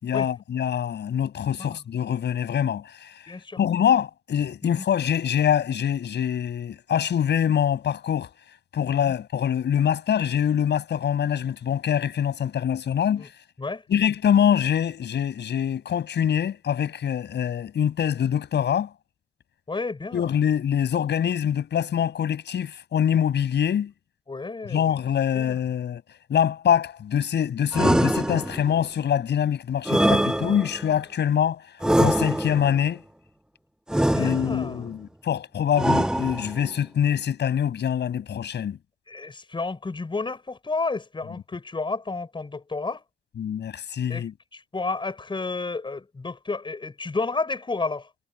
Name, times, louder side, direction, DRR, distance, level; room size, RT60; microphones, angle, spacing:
voice 1, 0.0-3.1 3.6-8.3 8.7-13.3 13.9-18.9 20.1-23.9 24.7-26.0 26.3-31.6 32.0-33.0 34.1-38.8 43.4-44.3, left 9 dB, 60° left, 6.6 m, -24 dB
voice 2, 3.3-3.6 4.6-4.8 8.9-9.1 13.2-13.3 13.6-13.8 19.7-20.3 24.3-25.0 25.3-25.6 34.1-34.9 39.1-43.0 44.1-44.3 44.5-48.1, left 3 dB, 25° left, 6.0 m, -31 dB
sound 1, 27.7-28.8 29.9-30.9 31.8-32.8 33.9-34.8 35.8-36.7, right 1 dB, 5° right, 0.8 m, -23 dB
cardioid pair, 90°, 20 cm